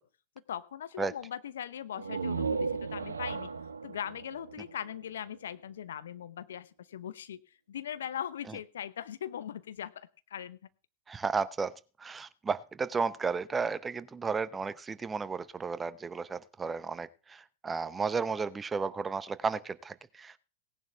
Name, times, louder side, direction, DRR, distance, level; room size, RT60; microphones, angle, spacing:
voice 1, 0.5-3.5 3.8-7.4 7.7-10.6, left 9 dB, 70° left, 13 dB, 0.9 m, -40 dB
sound 1, 1.9-5.6, right 5 dB, 80° right, 1.0 m, -36 dB
voice 2, 11.1-20.4, right 5 dB, 15° right, 16 dB, 0.7 m, -33 dB
18.0 x 10.5 x 3.4 m, 0.34 s
figure-of-eight pair, 95°, 0 cm